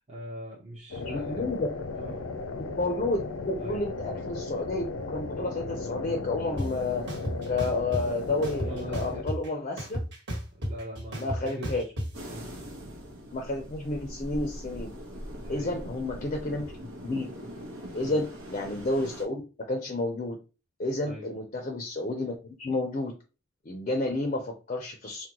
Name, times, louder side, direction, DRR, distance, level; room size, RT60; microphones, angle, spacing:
voice 1, 0.1-1.5 1.9-2.5 3.6-3.8 8.7-9.3 10.5-11.9 12.3-12.5 15.4-15.7 18.0-18.2 21.0-21.3, right 1 dB, 30° right, -3 dB, 0.6 m, -42 dB
sound 1, 0.9-9.2, left 3 dB, 85° left, 0.5 m, -36 dB
voice 2, 1.0-1.7 2.6-7.0 7.5-10.0 11.1-11.9 13.3-14.9 15.5-17.3 17.9-20.4 20.8-23.1 23.7-25.3, left 2 dB, 35° left, 3 dB, 0.4 m, -31 dB
sound 2, 6.6-6.7 7.1-8.0 8.4-9.5 9.8-12.1, equal, 55° right, 1.2 m, -32 dB
sound 3, 12.1-19.2, equal, 90° right, 0.9 m, -41 dB
3.7 x 2.1 x 2.8 m, 0.32 s
head